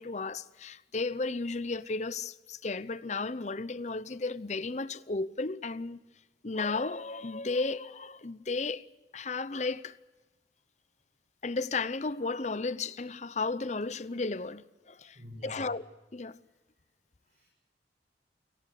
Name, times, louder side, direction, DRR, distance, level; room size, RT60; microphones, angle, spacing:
voice 1, 0.0-6.0 6.4-8.9 9.1-9.9 11.4-15.8 16.1-16.4, left 3 dB, 40° left, 0.7 m, -34 dB
voice 2, 15.1-15.8 16.3-16.5 17.2-17.5, left 1 dB, 40° right, 6.2 m, -49 dB
29.0 x 18.0 x 8.4 m
head